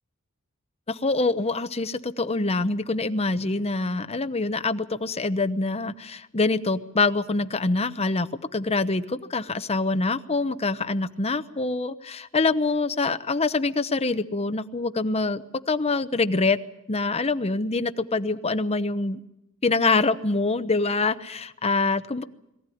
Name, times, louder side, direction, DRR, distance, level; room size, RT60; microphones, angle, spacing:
voice 1, 0.9-16.6 16.9-19.2 19.6-22.2, left 3 dB, 30° left, 11 dB, 0.9 m, -25 dB
22.5 x 15.0 x 10.0 m, 0.88 s
head